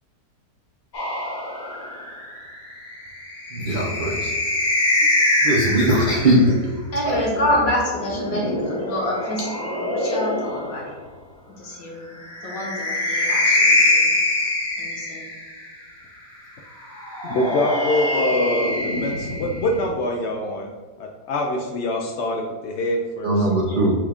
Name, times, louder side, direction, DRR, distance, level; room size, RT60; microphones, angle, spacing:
sound 1, 0.9-6.5 7.8-10.8 12.2-15.7 16.9-19.8, left 1 dB, 45° left, 1.2 m, -24 dB
voice 1, 3.5-4.3 5.4-6.5 7.1-7.2 23.2-23.9, right 1 dB, 75° right, -3 dB, 0.4 m, -19 dB
voice 2, 6.9-10.9 11.6-12.2 12.4-14.1 14.8-15.3, left 1 dB, 60° left, -4 dB, 1.6 m, -27 dB
voice 3, 17.3-20.7 21.0-23.5, left 1 dB, 85° left, 1 dB, 0.6 m, -25 dB
6.1 x 2.4 x 3.4 m, 1.4 s
omnidirectional pair, 1.7 m